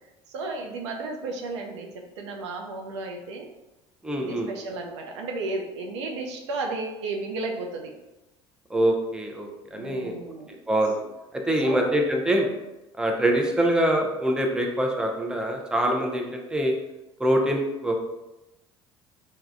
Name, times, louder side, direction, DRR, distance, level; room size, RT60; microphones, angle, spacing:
voice 1, 0.3-3.5 4.2-7.9 9.7-10.5 11.6-11.9, right 3 dB, 80° right, 2 dB, 0.4 m, -33 dB
voice 2, 4.0-4.5 8.7-10.1 10.7-10.9 11.5-12.5 13.0-16.7 17.2-18.0, right 1 dB, 5° right, 1 dB, 0.5 m, -24 dB
3.3 x 2.1 x 2.4 m, 1.0 s
hypercardioid pair, 65°, 15 cm